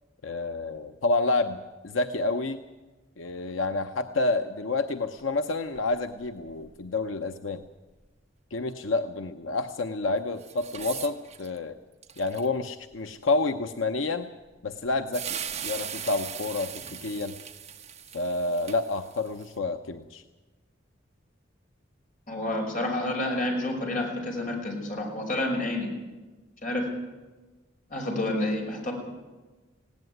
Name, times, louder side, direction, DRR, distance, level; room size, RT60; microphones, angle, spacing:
voice 1, 0.2-2.6 3.2-7.6 8.5-11.8 12.2-14.3 14.6-15.4 15.6-17.4 18.1-20.2, left 3 dB, 85° left, 7 dB, 0.8 m, -29 dB
sound 1, 5.2-5.4 5.7-5.8 6.2-6.7 10.4-11.6 12.0-12.5 12.9-13.0 14.9-15.0 15.1-19.5, right 8 dB, 35° right, 1.4 m, -39 dB
voice 2, 22.3-25.9 26.6-26.9 27.9-28.9, left 1 dB, 45° left, 1 dB, 5.7 m, -29 dB
19.0 x 17.0 x 9.4 m, 1.2 s
head